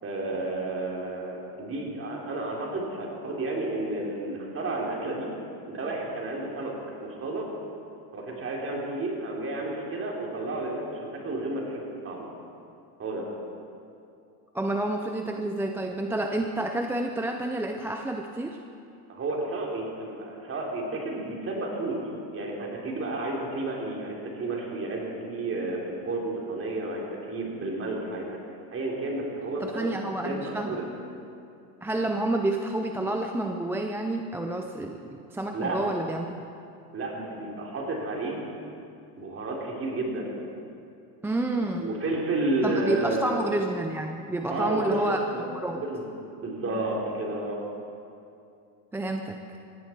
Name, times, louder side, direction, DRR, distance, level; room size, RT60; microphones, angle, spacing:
voice 1, 0.0-5.3 5.7-7.5 8.1-12.3 13.0-13.3 19.1-28.3 28.7-29.9 30.2-30.9 35.5-35.8 36.9-38.4 39.2-40.3 41.8-43.4 44.5-45.4 45.7-46.1 46.4-47.6, right 2 dB, 30° right, -2 dB, 3.8 m, -31 dB
voice 2, 14.5-18.6 29.6-30.8 31.8-36.4 41.2-41.9 42.6-45.8 48.9-49.4, right 2 dB, 5° right, 4 dB, 0.4 m, -29 dB
17.5 x 16.0 x 4.6 m, 2.6 s
supercardioid pair, 125°, 46 cm